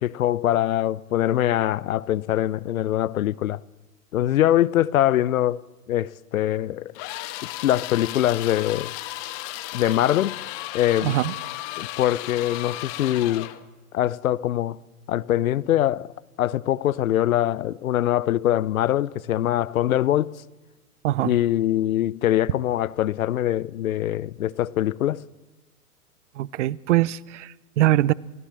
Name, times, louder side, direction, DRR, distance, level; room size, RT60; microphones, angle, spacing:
voice 1, 0.0-3.6 4.1-5.6 5.9-6.9 7.6-8.9 9.7-10.4 10.7-11.2 11.8-13.5 13.9-14.8 15.1-20.4 21.2-25.2, left 12 dB, 60° left, 0.8 m, -23 dB
sound 1, 7.0-13.6, left 16 dB, 40° left, 1.5 m, -34 dB
voice 2, 11.0-11.3 21.0-21.3 26.4-28.1, right 15 dB, 50° right, 0.8 m, -22 dB
29.0 x 17.5 x 7.6 m
figure-of-eight pair, 105°, 46 cm